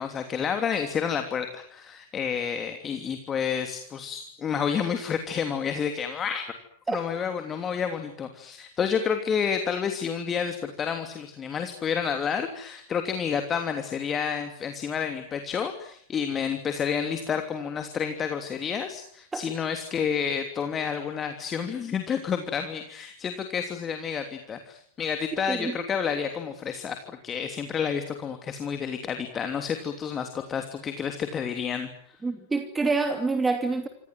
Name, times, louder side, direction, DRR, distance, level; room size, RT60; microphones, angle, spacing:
voice 1, 0.0-6.4 6.9-31.9, left 7 dB, 25° left, 6 dB, 3.0 m, -30 dB
voice 2, 32.2-33.9, right 3 dB, 10° right, 7 dB, 2.6 m, -26 dB
27.5 x 27.0 x 7.7 m, 0.64 s
figure-of-eight pair, 90°, 0 cm